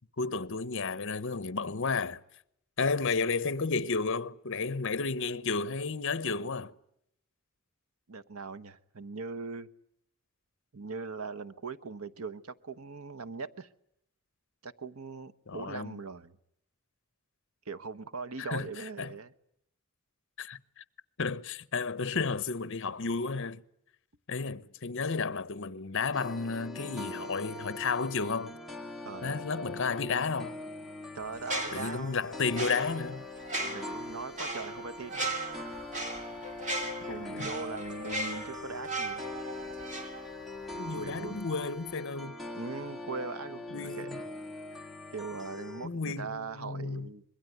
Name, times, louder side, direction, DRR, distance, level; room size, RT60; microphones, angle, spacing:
voice 1, 0.2-2.2 2.8-6.7 15.5-16.0 18.4-18.7 19.0-19.1 20.4-20.8 21.2-23.6 24.3-28.6 29.2-30.6 31.7-33.3 40.7-42.4 43.7-44.2 45.8-47.1, left 4 dB, 60° left, 1.0 m, -32 dB
voice 2, 8.1-9.7 10.7-13.7 14.6-16.4 17.7-19.3 29.0-29.5 31.1-32.2 33.6-35.4 37.0-39.3 40.9-41.5 42.5-44.3 45.1-47.2, right 4 dB, 85° right, 1.1 m, -40 dB
sound 1, 26.1-45.9, left 2 dB, ahead, 2.1 m, -42 dB
sound 2, 31.4-40.8 41.1-41.3, right 2 dB, 35° right, 3.3 m, -37 dB
25.5 x 22.0 x 9.3 m
head